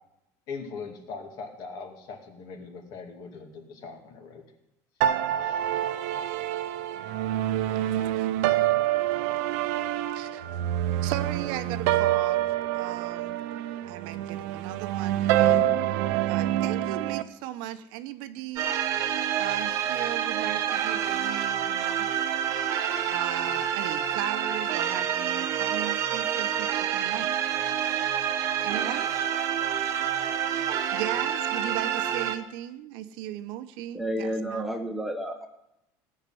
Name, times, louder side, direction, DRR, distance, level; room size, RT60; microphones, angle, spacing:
voice 1, 0.5-4.4 5.4-5.7, left 4 dB, 45° left, 4 dB, 2.3 m, -41 dB
sound 1, 5.0-17.2, right 12 dB, 90° right, 0.8 m, -26 dB
voice 2, 7.7-8.3 10.1-10.7 11.0-15.7 16.3-18.7 19.3-22.1 23.0-27.3 28.6-29.1 30.7-34.7, right 13 dB, 65° right, 11 dB, 0.9 m, -37 dB
sound 2, 18.6-32.4, right 9 dB, 40° right, 1.1 m, -28 dB
voice 3, 33.9-35.5, equal, ahead, 4 dB, 1.0 m, -31 dB
17.0 x 6.6 x 9.2 m, 0.86 s
cardioid pair, 170°, 9 cm